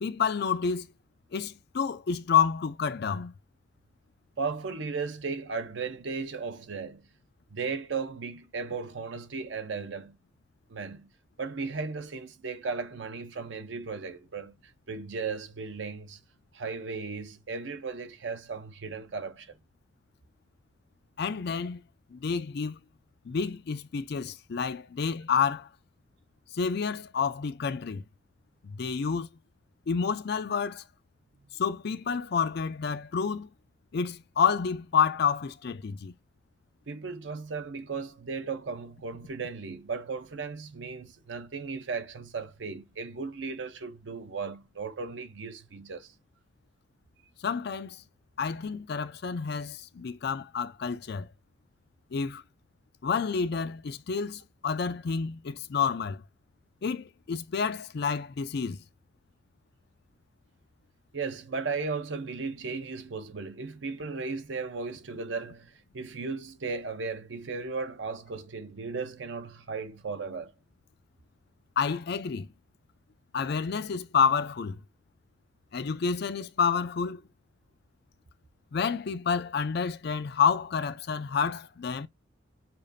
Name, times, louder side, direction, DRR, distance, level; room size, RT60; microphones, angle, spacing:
voice 1, 0.0-0.9 1.3-3.3 21.2-21.8 22.1-22.8 23.3-25.7 26.5-28.0 28.6-29.3 29.9-30.8 31.5-33.5 33.9-36.1 47.4-48.0 48.4-51.3 52.1-52.4 53.0-56.2 56.8-58.8 71.8-72.5 73.3-74.8 75.7-77.2 78.7-82.1, left 6 dB, 55° left, 0.4 m, -29 dB
voice 2, 4.4-7.1 7.5-10.2 10.7-11.1 11.4-14.5 14.9-16.2 16.5-19.5 36.9-46.1 61.1-70.5, right 4 dB, 70° right, 0.7 m, -36 dB
6.7 x 2.5 x 2.6 m
head